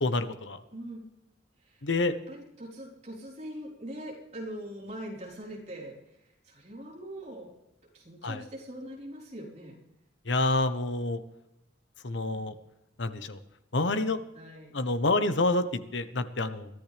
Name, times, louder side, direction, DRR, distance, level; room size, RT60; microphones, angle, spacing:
voice 1, 0.0-0.6 1.8-2.1 8.2-8.4 10.3-11.2 12.0-12.5 13.0-13.4 13.7-14.2 14.7-15.6 15.9-16.7, left 2 dB, 75° left, 11 dB, 1.1 m, -27 dB
voice 2, 0.7-1.0 2.0-5.9 6.5-7.5 7.9-9.8 12.3-12.6 14.3-14.8, right 1 dB, 40° right, -2 dB, 4.3 m, -42 dB
22.0 x 14.0 x 3.4 m, 0.89 s
head